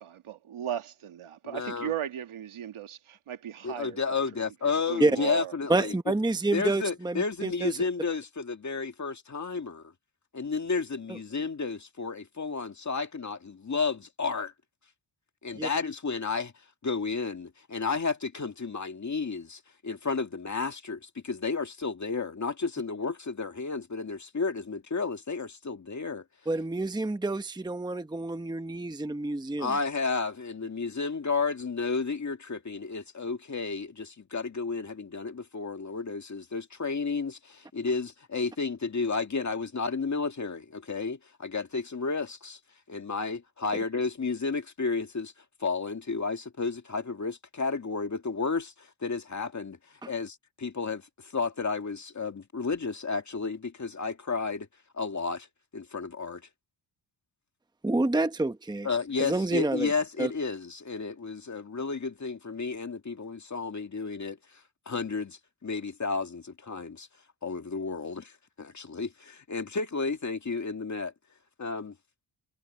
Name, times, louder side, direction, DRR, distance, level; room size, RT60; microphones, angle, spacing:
voice 1, 0.0-4.2 4.9-5.5, right 10 dB, 85° right, 1.9 m, -36 dB
voice 2, 1.4-1.9 3.6-5.9 6.5-9.9 10.3-14.5 15.4-16.5 16.8-26.3 29.6-42.6 42.9-45.3 45.6-49.8 50.1-54.7 55.0-55.5 55.7-56.4 58.8-64.4 64.9-67.1 67.4-71.1 71.6-71.9, left 4 dB, 35° left, 2.2 m, -32 dB
voice 3, 5.7-7.8 15.5-15.7 26.5-29.8 50.0-50.1 57.8-58.9 59.2-59.9 60.2-60.3, right 2 dB, 10° right, 1.0 m, -28 dB
wide cardioid pair, 110°, 48 cm